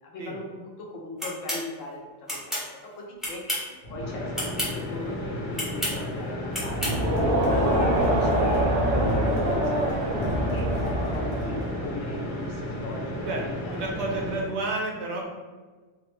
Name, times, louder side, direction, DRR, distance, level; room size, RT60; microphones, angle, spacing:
voice 1, 0.0-2.3 2.6-2.7 3.0-3.4 3.9-10.6 11.1-14.2, left 1 dB, 75° left, -1 dB, 1.0 m, -39 dB
sound 1, 1.2-1.6 2.3-2.7 3.2-3.7 4.3-4.7 5.5-6.0 6.5-7.0, equal, ahead, 0.6 m, -30 dB
sound 2, 3.8-14.5, left 1 dB, 35° left, 1.1 m, -34 dB
Crowd, 6.6-11.8, right 1 dB, 85° right, 1.2 m, -24 dB
voice 2, 13.7-15.2, right 2 dB, 65° right, -1 dB, 0.8 m, -30 dB
3.4 x 2.0 x 3.1 m, 1.3 s
omnidirectional pair, 1.4 m